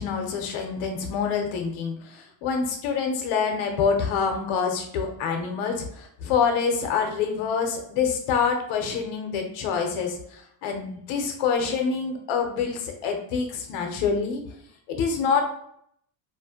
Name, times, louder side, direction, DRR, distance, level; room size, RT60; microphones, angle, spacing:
voice 1, 0.0-14.4 14.9-15.4, left 6 dB, 90° left, 3 dB, 0.7 m, -26 dB
2.4 x 2.1 x 2.7 m, 0.71 s
cardioid pair, 115°, 48 cm